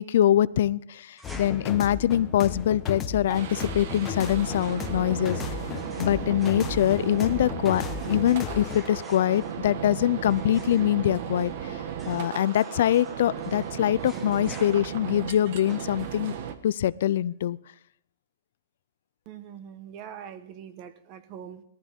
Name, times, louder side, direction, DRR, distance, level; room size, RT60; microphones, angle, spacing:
voice 1, 0.0-5.4 6.0-11.5 12.1-16.4 16.6-17.6, left 11 dB, 60° left, 18 dB, 0.4 m, -24 dB
sound 1, 1.2-8.9, left 7 dB, 15° left, 1.1 m, -35 dB
sound 2, 1.2-16.5, equal, 5° right, 1.3 m, -51 dB
sound 3, 3.3-16.6, right 8 dB, 45° right, 1.4 m, -36 dB
voice 2, 19.3-21.6, right 9 dB, 30° right, 12 dB, 1.2 m, -43 dB
19.0 x 14.0 x 3.6 m, 0.73 s
hypercardioid pair, 165°, 0 cm